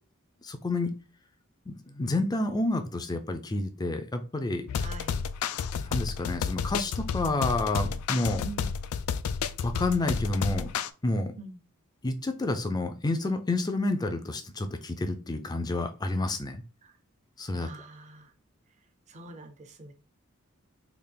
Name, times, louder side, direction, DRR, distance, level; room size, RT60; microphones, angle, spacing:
voice 1, 0.4-0.9 1.7-4.6 5.8-8.4 9.6-10.7 11.0-11.3 12.0-16.6 17.4-17.7, left 2 dB, 20° left, 0.4 m, -29 dB
sound 1, 4.7-10.9, left 6 dB, 85° left, 0.3 m, -31 dB
voice 2, 4.8-5.2 8.3-8.8 11.4-11.6 16.8-16.9 17.5-18.3 19.1-19.9, right 3 dB, 35° right, 0.6 m, -44 dB
3.4 x 2.4 x 3.8 m
head